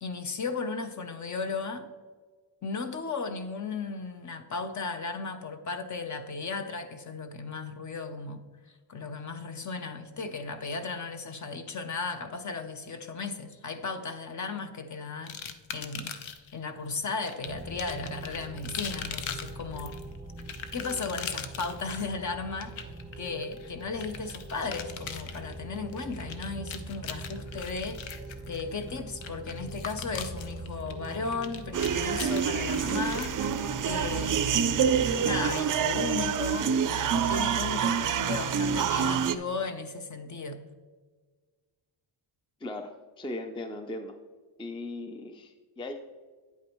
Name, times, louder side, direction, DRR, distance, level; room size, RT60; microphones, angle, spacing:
voice 1, 0.0-1.9 2.6-8.4 8.9-15.4 15.7-20.0 20.7-28.0 28.5-33.4 33.9-34.8 35.2-40.6, left 4 dB, 40° left, 8 dB, 0.7 m, -35 dB
sound 1, 15.3-16.5 17.2-34.1, left 7 dB, 70° left, 0.8 m, -41 dB
sound 2, 17.4-35.6, right 2 dB, 10° right, 1.0 m, -43 dB
sound 3, 31.7-39.3, right 7 dB, 45° right, 0.4 m, -27 dB
voice 2, 42.6-44.2 44.6-45.9, left 2 dB, 10° left, 6 dB, 0.4 m, -38 dB
9.5 x 8.3 x 3.0 m, 1.4 s
wide cardioid pair, 135°, 48 cm